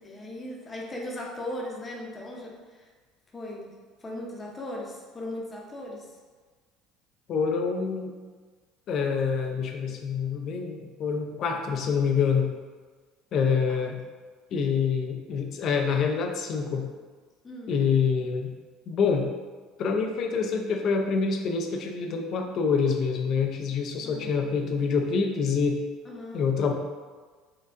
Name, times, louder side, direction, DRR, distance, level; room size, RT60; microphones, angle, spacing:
voice 1, 0.0-2.5 3.3-6.1 13.7-13.8 17.4-17.8 24.0-24.4 26.0-26.5, left 1 dB, 25° left, -2 dB, 0.8 m, -38 dB
voice 2, 7.3-8.1 8.9-12.5 13.3-14.0 14.5-16.9 17.7-18.5 18.9-19.3 19.8-25.8 26.3-26.7, left 5 dB, 55° left, 3 dB, 0.5 m, -26 dB
4.5 x 2.4 x 2.5 m, 1.4 s
supercardioid pair, 85°, 0 cm